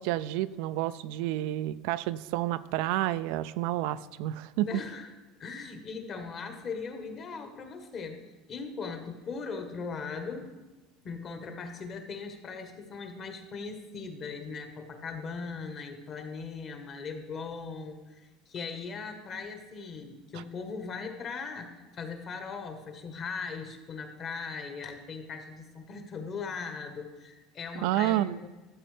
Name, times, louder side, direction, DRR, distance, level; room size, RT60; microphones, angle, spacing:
voice 1, 0.0-4.7 27.8-28.4, right 14 dB, 70° right, 15 dB, 0.3 m, -30 dB
voice 2, 4.6-5.1 5.4-8.2 8.5-10.5 11.0-28.5, left 5 dB, 35° left, 6 dB, 1.2 m, -39 dB
13.0 x 7.8 x 3.3 m, 1.2 s
cardioid pair, 145°, 0 cm